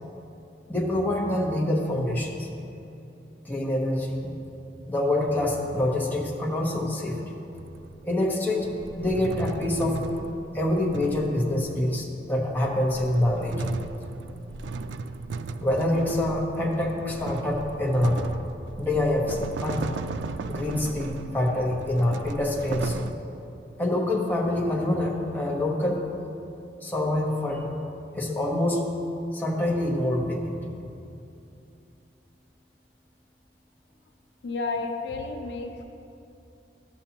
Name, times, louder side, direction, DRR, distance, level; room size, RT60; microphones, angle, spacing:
voice 1, 0.7-2.5 3.4-4.3 4.9-7.4 8.0-10.0 10.5-13.8 15.6-18.2 18.8-19.9 20.5-23.1 23.8-26.0 26.8-27.7 28.1-28.9 29.3-30.6, left 1 dB, 10° left, -2 dB, 1.0 m, -26 dB
sound 1, 5.3-6.6 7.6-12.2 12.7-23.1, right 4 dB, 85° right, 0.3 m, -37 dB
voice 2, 34.4-35.8, left 3 dB, 70° left, 4 dB, 0.6 m, -31 dB
12.5 x 7.1 x 2.9 m, 2.7 s
head